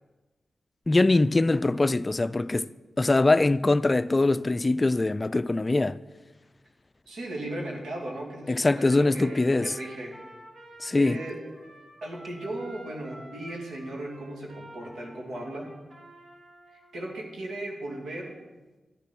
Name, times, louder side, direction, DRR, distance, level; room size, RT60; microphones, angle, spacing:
voice 1, 0.9-2.7 3.0-6.0 8.5-9.8 10.8-11.2, left 2 dB, 35° left, 0.4 m, -23 dB
voice 2, 7.1-10.2 10.9-11.4 12.0-15.7 16.9-18.4, right 1 dB, 85° right, 2.7 m, -37 dB
Trumpet, 9.1-16.8, right 1 dB, 70° right, 3.4 m, -50 dB
11.5 x 10.5 x 6.2 m
cardioid pair, 50°, 0 cm